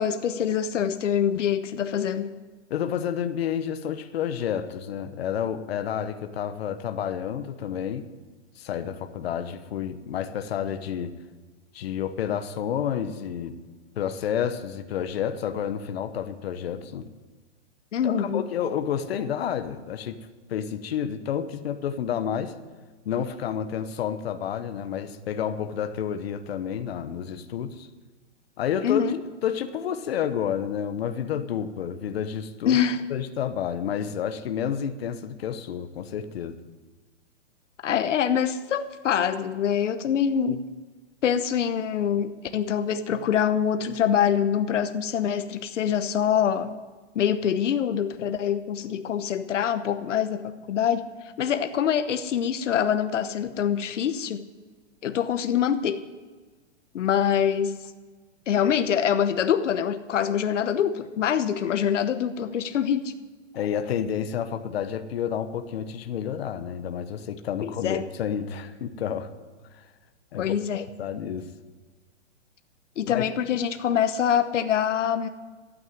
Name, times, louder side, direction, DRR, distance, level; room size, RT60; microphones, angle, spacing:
voice 1, 0.0-2.3 17.9-18.5 28.8-29.2 32.7-33.0 37.8-40.7 41.2-46.7 47.1-51.1 51.4-54.4 55.0-56.0 56.9-57.9 58.5-63.1 67.6-68.1 70.4-70.9 73.0-75.3, left 8 dB, 80° left, 10 dB, 1.0 m, -25 dB
voice 2, 2.7-8.1 8.6-11.1 11.7-13.6 14.0-17.1 18.0-20.2 20.5-22.5 23.0-27.9 28.6-29.1 29.4-32.8 33.1-36.6 63.5-69.3 69.8-69.9 70.3-71.5 73.1-73.3, left 8 dB, 55° left, 9 dB, 1.0 m, -30 dB
13.0 x 8.8 x 9.1 m, 1.4 s
hypercardioid pair, 170°, 36 cm